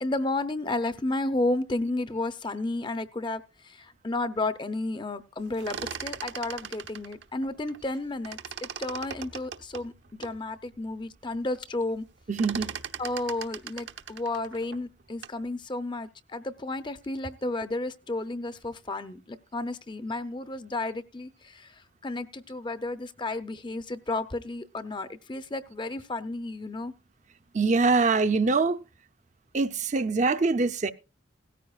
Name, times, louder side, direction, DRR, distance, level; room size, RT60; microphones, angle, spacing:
voice 1, 0.0-12.0 13.0-21.7 22.0-26.9, left 2 dB, 25° left, 0.6 m, -32 dB
sound 1, 5.4-8.0 8.2-10.4 10.9-11.0 11.2-11.7 11.9-15.5, right 7 dB, 70° right, 0.9 m, -39 dB
voice 2, 12.3-12.8 27.5-28.8 29.5-30.9, right 3 dB, 40° right, 0.6 m, -24 dB
17.0 x 14.5 x 2.4 m
head